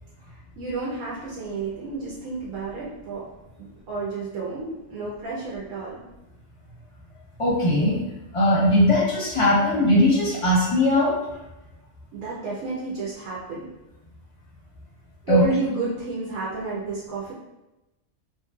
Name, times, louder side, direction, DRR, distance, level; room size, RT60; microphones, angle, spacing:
voice 1, 0.3-3.2 3.6-6.0 12.1-13.7 15.2-17.3, right 3 dB, 80° right, -6 dB, 1.1 m, -31 dB
voice 2, 7.4-8.0 8.3-11.1 15.3-15.4, left 1 dB, 30° left, -6 dB, 0.8 m, -19 dB
3.1 x 2.6 x 2.3 m, 0.98 s
omnidirectional pair, 1.3 m